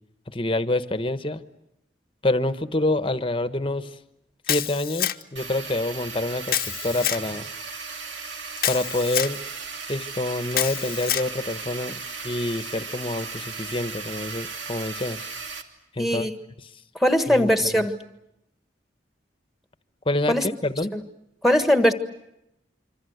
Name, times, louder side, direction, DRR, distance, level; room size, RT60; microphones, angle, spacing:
voice 1, 0.3-1.4 2.2-4.0 4.5-7.5 8.7-9.4 9.9-12.0 12.2-15.2 15.9-16.3 16.6-16.7 17.3-17.5 20.0-20.9, left 2 dB, 30° left, 11 dB, 1.1 m, -27 dB
Camera, 4.5-5.4 6.5-7.2 8.6-9.4 10.5-11.3, left 12 dB, 50° left, 0.9 m, -27 dB
sound 1, 5.4-15.6, right 4 dB, 80° right, 2.7 m, -36 dB
voice 2, 16.0-16.3 17.0-17.9 20.3-20.4 20.9-21.0 21.4-21.9, equal, ahead, 8 dB, 1.5 m, -20 dB
26.5 x 25.5 x 8.0 m, 0.85 s
head